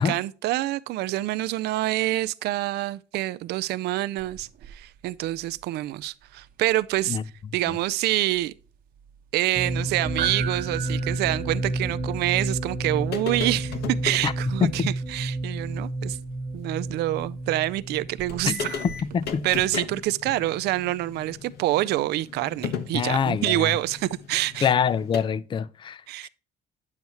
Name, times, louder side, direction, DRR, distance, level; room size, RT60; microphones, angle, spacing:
voice 1, 0.0-7.2 7.5-8.5 9.3-16.2 16.5-18.8 19.4-24.7 26.1-26.3, right 16 dB, 75° right, 0.4 m, -27 dB
sound 1, 4.2-19.3, right 10 dB, 60° right, 1.0 m, -43 dB
sound 2, 9.6-19.2, right 2 dB, 20° right, 1.0 m, -31 dB
sound 3, 13.1-14.3 15.8-15.9 16.3-16.4 18.0-18.1 18.3-25.2, left 7 dB, 75° left, 1.3 m, -36 dB
voice 2, 19.1-19.4 22.9-23.7 24.6-26.3, left 7 dB, 30° left, 0.5 m, -25 dB
9.3 x 7.2 x 2.9 m
cardioid pair, 110°, 17 cm